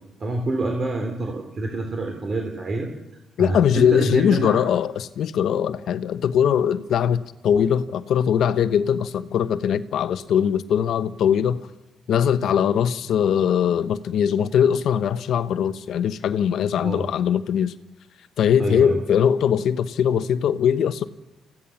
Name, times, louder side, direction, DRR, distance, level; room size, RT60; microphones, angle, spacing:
voice 1, 0.2-2.9 3.4-4.6 16.8-17.0 18.6-19.0, right 2 dB, 40° right, 3 dB, 3.6 m, -27 dB
voice 2, 3.4-11.7 12.1-17.7 18.4-21.0, left 8 dB, 70° left, 12 dB, 1.1 m, -21 dB
27.5 x 16.0 x 7.2 m, 0.97 s
cardioid pair, 90°, 0 cm